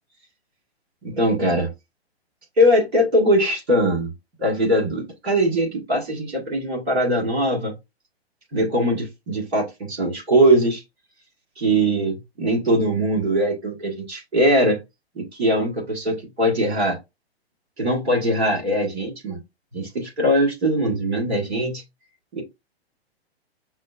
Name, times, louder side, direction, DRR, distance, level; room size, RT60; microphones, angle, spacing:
voice 1, 1.0-1.7 2.6-4.1 4.4-7.7 8.5-10.8 11.6-14.8 15.2-17.0 17.8-19.4 19.7-21.8 22.3-22.4, equal, 75° right, 1.8 m, -21 dB
5.9 x 2.1 x 2.4 m
figure-of-eight pair, 115°, 32 cm